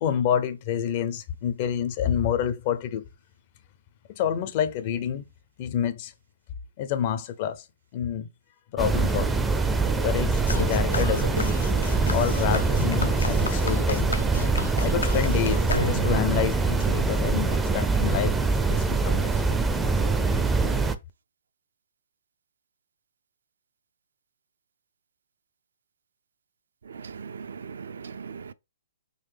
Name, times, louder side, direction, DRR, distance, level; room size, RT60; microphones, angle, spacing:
voice 1, 0.0-3.0 4.1-5.2 5.6-6.1 6.8-7.7 7.9-8.3 8.7-9.4 10.0-11.6 12.1-14.1 14.8-18.4 18.7-19.4, left 9 dB, 40° left, 0.6 m, -28 dB
sound 1, 8.8-20.9, right 4 dB, 10° right, 0.4 m, -24 dB
sound 2, 10.5-16.3, left 3 dB, 85° left, 0.6 m, -32 dB
voice 2, 26.9-28.5, right 6 dB, 70° right, 0.4 m, -39 dB
3.9 x 2.7 x 3.4 m
hypercardioid pair, 135°, 0 cm